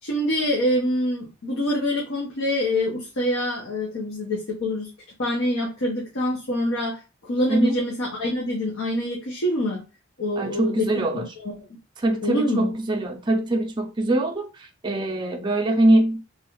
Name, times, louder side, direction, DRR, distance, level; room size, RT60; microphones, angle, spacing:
voice 1, 0.0-4.9 5.2-9.8 10.2-10.9 11.1-11.8 12.2-12.7, left 1 dB, 80° left, 0.8 m, -25 dB
voice 2, 7.5-7.8 10.4-11.2 12.0-16.2, right 1 dB, 20° right, 0.4 m, -23 dB
3.0 x 2.4 x 3.0 m
head